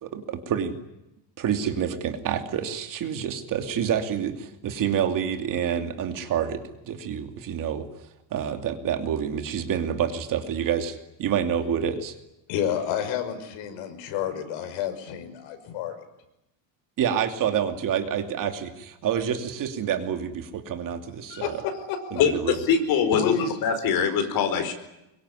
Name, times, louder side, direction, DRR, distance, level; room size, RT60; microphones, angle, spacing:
voice 1, 0.0-0.7 1.4-6.6 6.9-7.9 8.3-12.1 17.0-21.6 22.1-22.6, right 8 dB, 40° right, 6 dB, 2.7 m, -28 dB
voice 2, 12.5-15.9 21.3-22.0 23.1-23.5, left 8 dB, 75° left, 8 dB, 5.8 m, -29 dB
voice 3, 22.2-24.7, left 6 dB, 50° left, 8 dB, 4.8 m, -23 dB
24.5 x 23.0 x 9.9 m, 0.90 s
cardioid pair, 165°, 47 cm